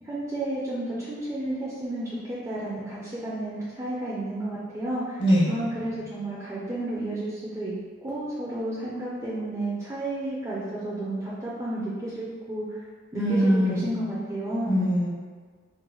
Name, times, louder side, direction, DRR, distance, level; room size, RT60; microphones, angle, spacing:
voice 1, 0.0-7.7 8.0-12.6 13.1-14.9, right 1 dB, 15° right, -8 dB, 0.4 m, -32 dB
voice 2, 5.2-5.7 13.1-14.1 14.6-15.1, equal, 55° left, -7 dB, 1.0 m, -23 dB
3.8 x 2.1 x 3.0 m, 1.5 s
head